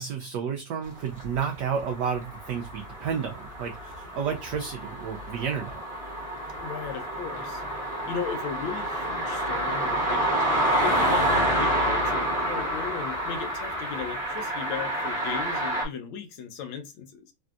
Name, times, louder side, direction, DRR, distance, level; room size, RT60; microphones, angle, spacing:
voice 1, 0.0-5.8, right 7 dB, 90° right, 0.9 m, -31 dB
sound 1, 1.2-15.9, right 1 dB, 35° right, 0.9 m, -28 dB
voice 2, 6.6-10.3 10.8-17.3, left 7 dB, 75° left, 1.3 m, -37 dB
3.3 x 2.6 x 2.2 m
omnidirectional pair, 2.4 m